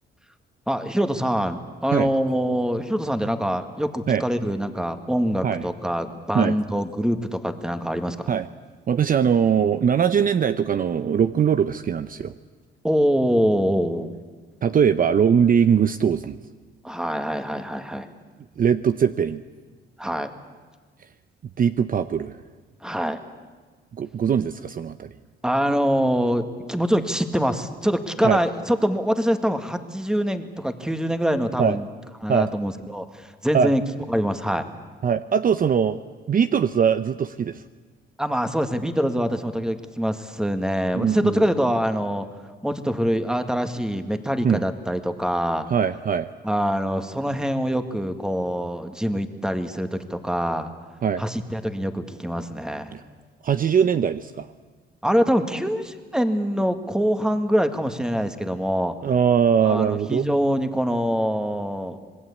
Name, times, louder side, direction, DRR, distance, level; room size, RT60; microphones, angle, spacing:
voice 1, 0.7-8.3 12.8-14.1 16.8-18.1 20.0-20.3 22.8-23.2 25.4-31.9 32.2-33.8 34.1-34.7 38.2-42.3 42.6-45.7 46.4-50.7 51.2-53.0 55.0-59.0 59.6-62.2, equal, 5° right, 8 dB, 1.9 m, -24 dB
voice 2, 8.9-12.3 14.6-16.4 18.6-19.4 21.6-22.4 24.0-25.1 28.2-28.4 31.6-31.8 32.3-32.5 33.5-33.7 35.0-36.0 36.3-37.6 40.9-41.4 44.4-44.6 45.7-46.3 51.0-51.2 52.9-53.0 53.4-54.5 59.0-60.3, right 7 dB, 45° right, 11 dB, 0.7 m, -21 dB
26.5 x 20.0 x 8.5 m, 1.4 s
cardioid pair, 90°, 20 cm